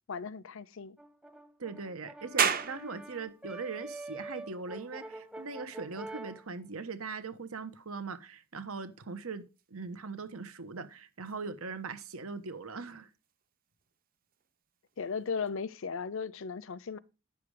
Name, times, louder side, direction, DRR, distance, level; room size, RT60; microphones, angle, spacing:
voice 1, 0.1-1.0 15.0-17.0, left 5 dB, 65° left, 0.5 m, -36 dB
Brass instrument, 1.0-6.4, right 2 dB, 5° right, 0.6 m, -45 dB
voice 2, 1.6-13.1, right 4 dB, 75° right, 1.1 m, -40 dB
sound 1, 2.4-15.5, right 7 dB, 40° right, 0.9 m, -40 dB
9.9 x 7.0 x 4.8 m
head